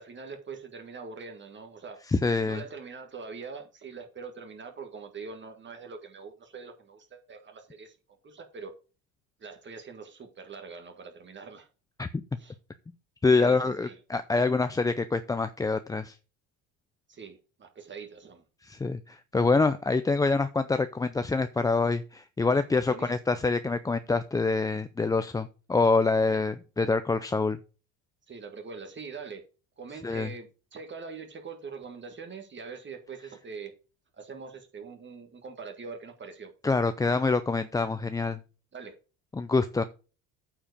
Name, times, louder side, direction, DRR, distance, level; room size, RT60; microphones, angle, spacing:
voice 1, 0.0-2.0 2.4-8.0 8.2-8.7 9.4-11.7 12.4-12.6 13.4-14.0 17.1-18.4 22.9-23.1 28.3-29.4 29.8-33.7 34.1-36.5 38.7-38.9, right 5 dB, 30° right, 1.6 m, -43 dB
voice 2, 2.1-2.6 12.0-12.1 13.2-16.2 18.6-27.6 30.0-30.3 36.6-38.4 39.4-39.8, left 3 dB, 10° left, 0.4 m, -26 dB
8.9 x 4.8 x 6.6 m
supercardioid pair, 110°, 37 cm